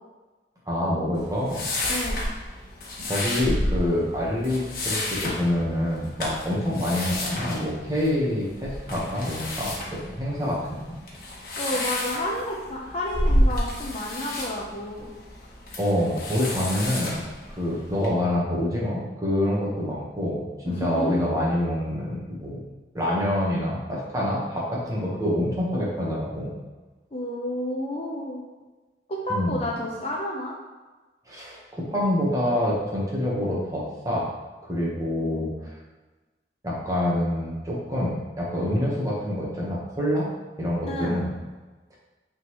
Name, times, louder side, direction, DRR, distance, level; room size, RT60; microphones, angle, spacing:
voice 1, 0.7-1.6 3.0-10.9 15.8-17.2 17.6-22.6 22.9-26.5 29.3-29.6 31.3-34.3 34.6-35.5 36.6-40.3 40.6-41.3, left 1 dB, 20° right, -5 dB, 1.3 m, -26 dB
sound 1, 1.1-18.1, left 1 dB, 55° left, 1.3 m, -30 dB
voice 2, 1.9-2.2 11.6-15.1 20.6-21.4 27.1-28.4 29.1-30.5 35.2-35.5 40.9-41.2, left 1 dB, 35° left, -4 dB, 0.7 m, -30 dB
8.9 x 3.8 x 3.1 m, 1.2 s
head